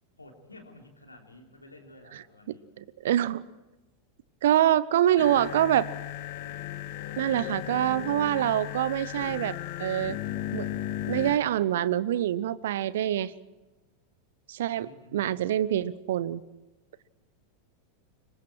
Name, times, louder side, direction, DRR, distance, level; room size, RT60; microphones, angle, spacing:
voice 1, 0.2-2.7 14.7-15.4, left 2 dB, 85° left, 2 dB, 3.6 m, -51 dB
voice 2, 2.8-3.4 4.4-5.9 7.2-10.2 10.5-10.7 11.1-13.3 14.5-16.4, right 11 dB, 60° right, 20 dB, 0.8 m, -25 dB
sound 1, 5.2-11.4, left 12 dB, 50° left, 1.4 m, -36 dB
26.0 x 23.5 x 4.6 m, 1.1 s
figure-of-eight pair, 90°, 0 cm